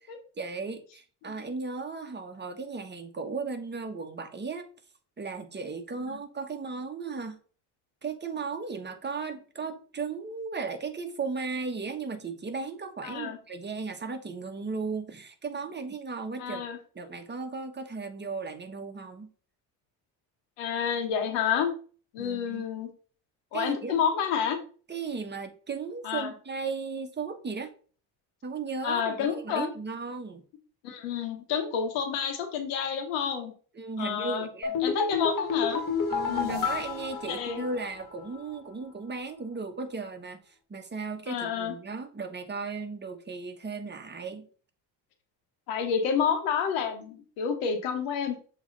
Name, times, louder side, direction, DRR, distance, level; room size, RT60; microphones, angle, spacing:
voice 1, 0.4-4.7 5.2-7.4 8.0-16.6 16.9-19.3 22.2-22.7 23.5-24.0 24.9-27.7 28.4-30.4 33.7-34.8 36.1-44.5, right 4 dB, 25° right, 1.3 m, -36 dB
voice 2, 13.0-13.4 16.4-16.8 20.6-21.7 22.1-22.9 23.5-24.6 26.0-26.3 28.8-29.7 30.8-33.5 34.0-34.5 34.8-35.8 36.3-36.7 37.3-37.6 41.3-41.7 45.7-48.4, left 7 dB, 90° left, 1.4 m, -29 dB
sound 1, 34.6-38.1 38.3-38.4, left 6 dB, 50° left, 1.8 m, -30 dB
7.1 x 3.3 x 4.0 m
supercardioid pair, 70°, 42 cm